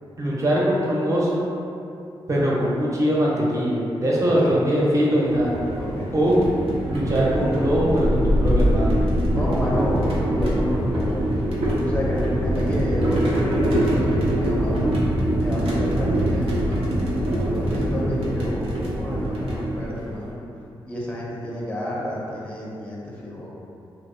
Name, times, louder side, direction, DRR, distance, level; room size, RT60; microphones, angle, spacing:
voice 1, 0.2-1.5 2.3-5.5 6.1-6.4 6.9-9.0, equal, 35° right, -6 dB, 0.6 m, -21 dB
voice 2, 4.2-4.5 5.7-6.1 9.3-11.2 11.9-14.9 15.4-16.9 17.4-20.4 20.8-23.5, equal, 15° left, -5 dB, 0.5 m, -30 dB
sound 1, 5.3-20.3, equal, 80° right, 0.5 m, -23 dB
2.6 x 2.0 x 2.5 m, 2.6 s
cardioid pair, 65°, 10 cm